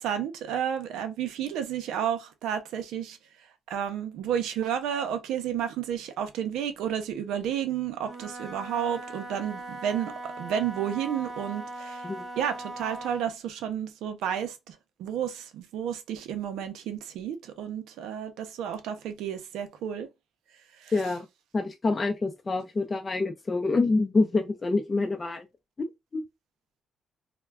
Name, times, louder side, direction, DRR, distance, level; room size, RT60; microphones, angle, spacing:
voice 1, 0.0-3.2 3.7-12.1 12.4-14.7 15.0-20.1 20.8-20.9, right 9 dB, 85° right, 0.5 m, -31 dB
Wind instrument woodwind instrument, 7.9-13.4, right 2 dB, 35° right, 0.6 m, -40 dB
voice 2, 20.9-21.3 21.5-25.5 26.1-26.2, left 3 dB, 30° left, 0.4 m, -26 dB
2.3 x 2.1 x 3.3 m
cardioid pair, 90°, 0 cm